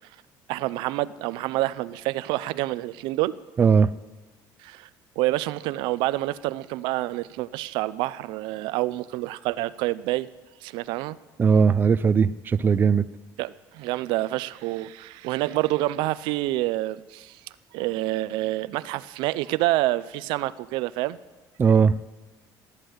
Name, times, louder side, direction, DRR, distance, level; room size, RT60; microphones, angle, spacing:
voice 1, 0.5-3.3 4.6-4.9 5.2-10.3 10.6-11.2 13.4-17.4 17.7-21.2, right 17 dB, 85° right, 16 dB, 0.5 m, -27 dB
voice 2, 3.6-3.9 11.4-13.0 21.6-21.9, right 6 dB, 25° right, 15 dB, 0.4 m, -18 dB
16.0 x 9.8 x 7.9 m, 1.2 s
cardioid pair, 125°, 8 cm